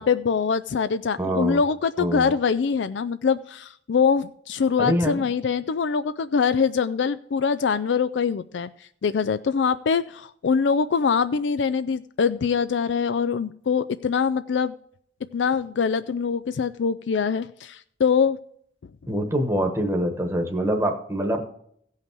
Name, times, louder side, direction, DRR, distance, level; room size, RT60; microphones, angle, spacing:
voice 1, 0.0-8.7 9.0-14.7 15.3-18.4, left 6 dB, 80° left, 13 dB, 0.4 m, -23 dB
voice 2, 1.2-1.6 2.0-2.3 4.8-5.2 19.1-21.4, right 1 dB, 15° right, 3 dB, 1.1 m, -24 dB
16.0 x 5.7 x 4.5 m, 0.66 s
head